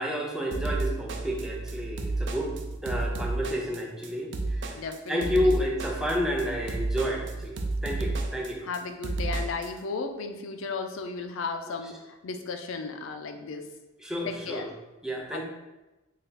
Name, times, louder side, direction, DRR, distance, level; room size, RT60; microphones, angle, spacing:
voice 1, 0.0-2.5 2.8-4.8 5.1-8.6 14.0-14.7 15.0-15.4, equal, 5° right, -2 dB, 0.5 m, -30 dB
sound 1, 0.5-9.7, right 2 dB, 65° right, 0.4 m, -32 dB
voice 2, 4.8-5.6 8.6-13.7 14.3-14.7 15.3-15.4, left 4 dB, 90° left, 6 dB, 0.4 m, -35 dB
3.3 x 2.3 x 4.0 m, 1.0 s
head